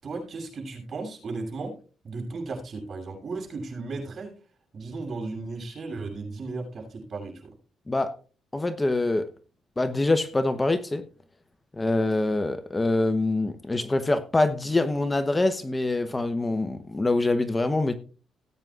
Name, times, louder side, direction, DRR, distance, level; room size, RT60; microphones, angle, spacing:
voice 1, 0.0-1.7 2.0-4.3 4.7-7.4, right 3 dB, 50° right, 1 dB, 7.2 m, -35 dB
voice 2, 8.5-9.3 9.8-11.0 11.8-18.0, left 2 dB, 20° left, 10 dB, 0.9 m, -25 dB
19.0 x 9.2 x 2.5 m, 0.36 s
cardioid pair, 90°, 0 cm